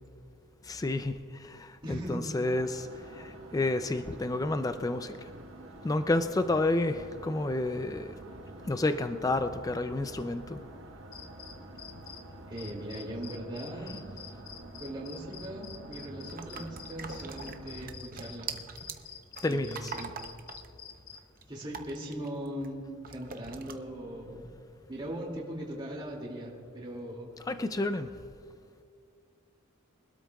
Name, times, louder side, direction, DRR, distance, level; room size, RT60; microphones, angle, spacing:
voice 1, 0.6-5.3 5.8-8.1 8.7-10.6 19.4-19.9 27.5-28.1, left 2 dB, 15° left, 9 dB, 0.4 m, -30 dB
voice 2, 1.8-2.2 12.5-14.0 14.8-18.5 19.4-20.1 21.5-24.5 24.9-27.3, right 1 dB, 25° right, -2 dB, 2.4 m, -39 dB
sound 1, 2.4-17.9, right 1 dB, 75° right, 1.5 m, -48 dB
sound 2, 11.1-12.2 12.6-21.2, left 8 dB, 80° left, 1.4 m, -47 dB
sound 3, 16.3-22.7 23.0-23.7, right 6 dB, 45° right, 0.8 m, -43 dB
24.0 x 12.5 x 2.3 m, 2.5 s
head